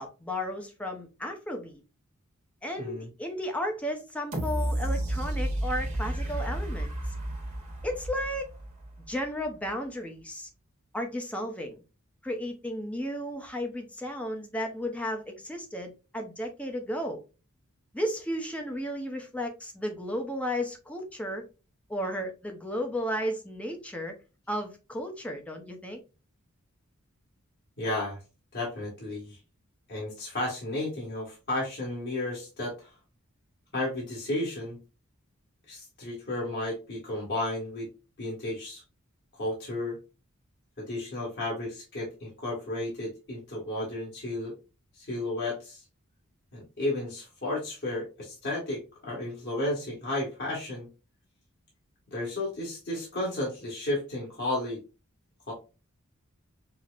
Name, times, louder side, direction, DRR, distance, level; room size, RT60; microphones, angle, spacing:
voice 1, 0.0-1.8 2.6-6.9 7.8-8.5 9.0-10.5 10.9-11.8 12.2-17.2 17.9-21.4 21.9-24.1 24.5-26.0, equal, 5° left, 0.6 m, -34 dB
voice 2, 2.8-3.1 27.8-28.2 28.5-29.4 29.9-32.9 33.7-34.8 35.7-37.9 38.2-38.8 39.4-40.0 40.8-44.5 45.0-45.8 46.5-50.9 52.1-54.8 55.5-55.6, left 1 dB, 55° left, 1.6 m, -33 dB
sound 1, 4.3-9.2 9.7-9.8, right 1 dB, 35° right, 1.0 m, -32 dB
5.7 x 2.1 x 2.4 m
head